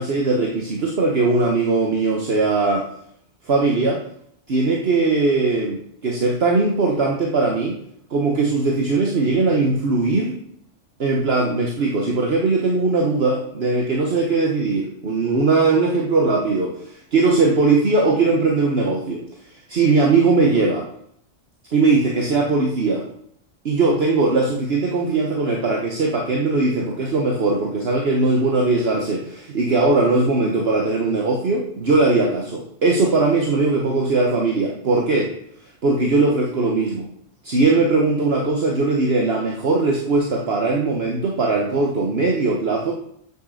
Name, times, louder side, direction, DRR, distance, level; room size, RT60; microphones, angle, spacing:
voice 1, 0.0-2.9 3.4-4.0 4.5-7.8 8.1-10.4 11.0-19.2 19.7-20.9 21.7-23.0 23.6-35.3 35.8-37.1 37.4-42.9, right 3 dB, 55° right, 0 dB, 1.4 m, -20 dB
7.6 x 6.8 x 6.5 m, 0.68 s
omnidirectional pair, 1.3 m